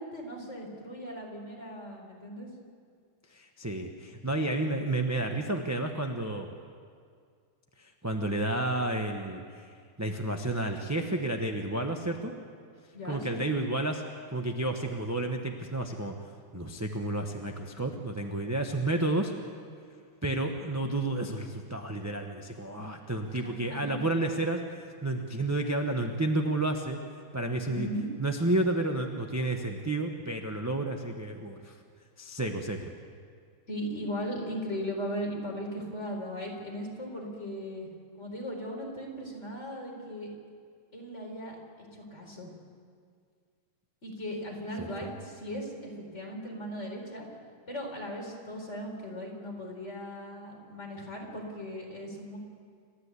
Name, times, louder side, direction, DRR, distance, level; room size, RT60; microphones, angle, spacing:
voice 1, 0.0-2.5 12.9-13.5 23.3-24.0 27.7-28.1 33.7-37.9 38.2-40.3 40.9-42.5 44.0-47.3 47.7-52.4, equal, 35° left, 0 dB, 4.5 m, -38 dB
voice 2, 3.3-6.5 7.8-9.7 10.0-12.4 13.1-14.0 14.3-16.1 16.5-19.3 20.2-24.6 25.0-27.0 27.3-27.9 28.2-31.8 32.2-32.9 44.8-45.1, right 2 dB, 15° right, 3 dB, 0.7 m, -31 dB
29.0 x 13.0 x 8.4 m, 2.1 s
omnidirectional pair, 2.2 m